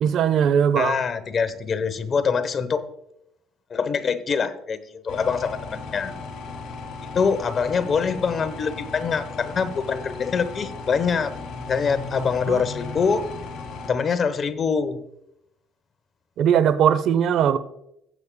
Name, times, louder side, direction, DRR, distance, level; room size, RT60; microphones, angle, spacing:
voice 1, 0.0-1.0 12.5-12.6 16.4-17.6, right 8 dB, 65° right, 0.5 m, -19 dB
voice 2, 0.8-2.8 3.7-6.1 7.1-11.3 11.7-13.2 13.9-15.0, left 5 dB, 40° left, 0.9 m, -24 dB
sound 1, 5.1-13.9, left 4 dB, 65° left, 2.4 m, -36 dB
16.0 x 8.1 x 2.2 m
cardioid pair, 105°, 0 cm